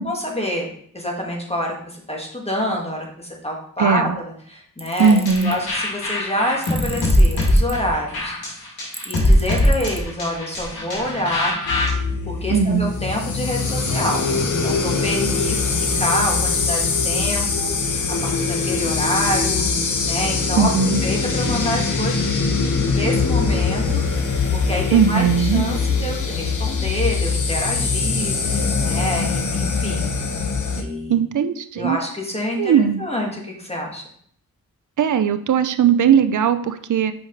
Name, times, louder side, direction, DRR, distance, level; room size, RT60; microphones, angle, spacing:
voice 1, 0.0-8.3 9.1-11.6 12.3-14.2 14.6-30.1 30.7-31.2 31.8-32.7 33.0-34.0, left 1 dB, 15° left, -1 dB, 2.0 m, -27 dB
voice 2, 3.8-4.1 5.0-5.5 12.5-12.9 20.6-21.0 24.9-25.7 31.1-32.0 32.6-33.0 35.0-37.1, right 7 dB, 55° right, 11 dB, 0.6 m, -18 dB
Tools, 4.8-5.6 6.6-7.7 8.9-10.0, right 2 dB, 15° right, 1.0 m, -36 dB
sound 1, 5.0-11.9, left 1 dB, 85° left, 2.4 m, -21 dB
sound 2, 11.7-30.8, left 4 dB, 55° left, 1.0 m, -22 dB
5.9 x 5.0 x 4.0 m, 0.63 s
cardioid pair, 45°, 37 cm